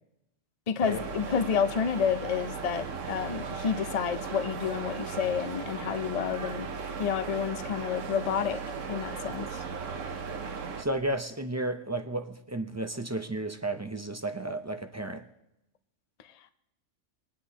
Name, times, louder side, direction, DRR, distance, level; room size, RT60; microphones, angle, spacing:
voice 1, 0.7-6.7 7.0-8.6 8.9-9.6, left 7 dB, 40° left, 0.6 m, -30 dB
sound 1, 0.8-10.8, right 5 dB, 85° right, 1.2 m, -37 dB
voice 2, 10.8-15.2, right 2 dB, 25° right, 0.4 m, -33 dB
22.0 x 10.5 x 2.8 m
omnidirectional pair, 1.3 m